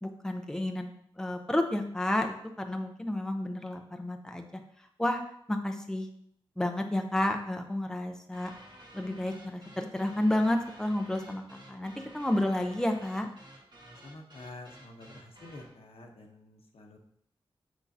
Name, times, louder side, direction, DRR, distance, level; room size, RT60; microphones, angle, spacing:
voice 1, 0.0-0.9 1.2-4.6 5.0-5.2 5.5-6.1 6.6-8.5 8.9-13.3, left 1 dB, 5° left, 4 dB, 0.6 m, -31 dB
sound 1, 8.3-15.8, right 1 dB, 50° right, 1.5 m, -53 dB
voice 2, 13.8-17.0, left 2 dB, 80° left, 2 dB, 1.0 m, -48 dB
6.9 x 6.1 x 2.8 m, 0.68 s
wide cardioid pair, 90°, 10 cm